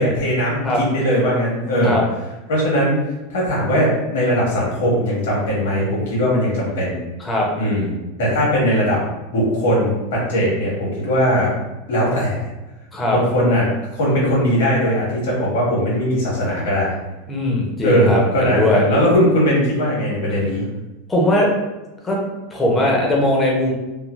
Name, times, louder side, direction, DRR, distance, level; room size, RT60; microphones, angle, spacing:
voice 1, 0.0-2.0 2.5-3.0 3.3-7.0 7.6-9.0 9.3-11.5 11.9-12.4 13.1-13.7 14.0-16.9 17.8-20.6, equal, 80° left, -5 dB, 1.4 m, -19 dB
voice 2, 17.3-18.8 21.1-21.5 22.0-22.2 22.5-23.7, left 1 dB, 10° left, -2 dB, 0.5 m, -19 dB
3.1 x 2.3 x 2.3 m, 1.1 s
supercardioid pair, 165°, 0 cm